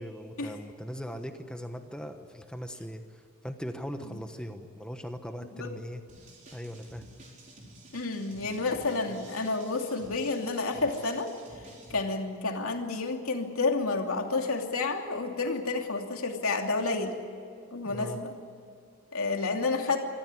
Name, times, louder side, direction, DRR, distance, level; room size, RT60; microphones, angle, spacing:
voice 1, 0.0-6.0 6.5-7.1 17.8-18.2, equal, 5° left, 6 dB, 1.1 m, -39 dB
sound 1, 6.1-12.0, right 1 dB, 35° right, 4.6 m, -51 dB
voice 2, 7.9-11.3 11.9-17.1 17.7-18.3 19.1-20.0, left 3 dB, 80° left, 3 dB, 2.8 m, -30 dB
25.0 x 14.5 x 9.8 m, 2.4 s
head